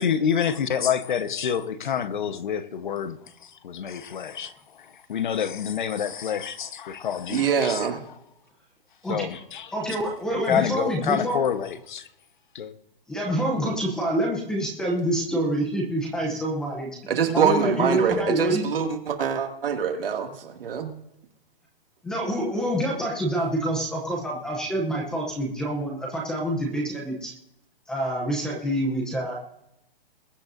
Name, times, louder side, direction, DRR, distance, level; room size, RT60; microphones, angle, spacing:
voice 1, 0.0-7.9 9.1-9.7 10.5-12.1 12.5-12.7, left 8 dB, 55° left, 1.0 m, -28 dB
voice 2, 7.3-8.0 17.1-20.9, right 7 dB, 75° right, 2.2 m, -24 dB
voice 3, 9.7-11.4 13.1-17.0 17.3-18.7 22.0-27.3 27.9-29.4, right 1 dB, ahead, 0.6 m, -27 dB
22.0 x 10.0 x 2.6 m
hypercardioid pair, 175°, 29 cm